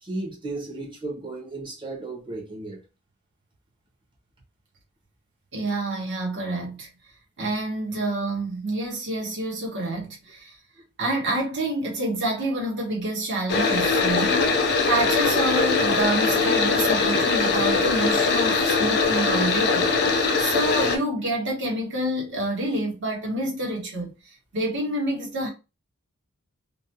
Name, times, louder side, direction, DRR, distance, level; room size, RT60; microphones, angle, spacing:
voice 1, 0.0-2.8, right 2 dB, 20° right, 0.8 m, -34 dB
voice 2, 5.5-6.9 7.4-10.5 11.0-14.6 14.9-24.1 24.5-25.5, right 1 dB, 55° right, 1.1 m, -28 dB
sound 1, 13.5-21.0, left 4 dB, 50° left, 0.5 m, -21 dB
2.5 x 2.1 x 2.8 m
head